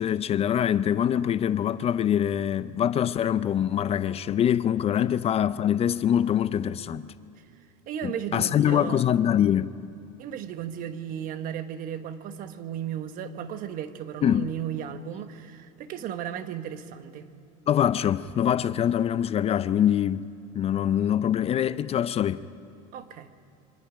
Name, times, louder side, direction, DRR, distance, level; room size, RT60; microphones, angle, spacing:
voice 1, 0.0-7.1 8.0-9.7 14.2-14.5 17.7-20.3 20.5-22.4, left 10 dB, 35° left, 0.6 m, -24 dB
voice 2, 7.9-9.1 10.2-17.3 22.9-23.3, right 9 dB, 50° right, 1.3 m, -35 dB
27.5 x 24.5 x 5.1 m
supercardioid pair, 100°, 18 cm